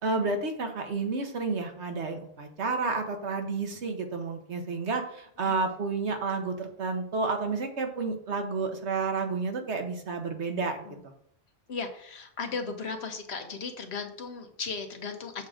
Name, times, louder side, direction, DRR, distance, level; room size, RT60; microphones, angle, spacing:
voice 1, 0.0-11.1, right 4 dB, 65° right, 5 dB, 1.3 m, -31 dB
voice 2, 11.7-15.5, left 4 dB, 65° left, 5 dB, 1.2 m, -36 dB
7.2 x 3.7 x 6.3 m, 0.66 s
omnidirectional pair, 1.2 m